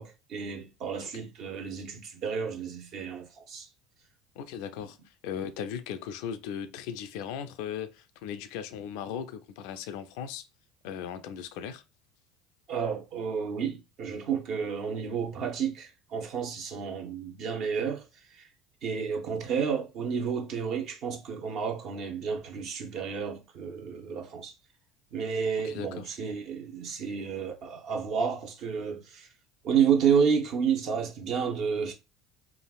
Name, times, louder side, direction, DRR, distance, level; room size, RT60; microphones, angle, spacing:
voice 1, 0.0-3.7 12.7-18.0 18.3-18.5 18.8-24.5 25.1-29.3 29.6-31.9, right 7 dB, 55° right, 0.7 m, -30 dB
voice 2, 4.4-10.4 10.8-11.8 25.6-26.1, left 8 dB, 65° left, 0.3 m, -37 dB
3.3 x 2.4 x 2.3 m
hypercardioid pair, 65°, 0 cm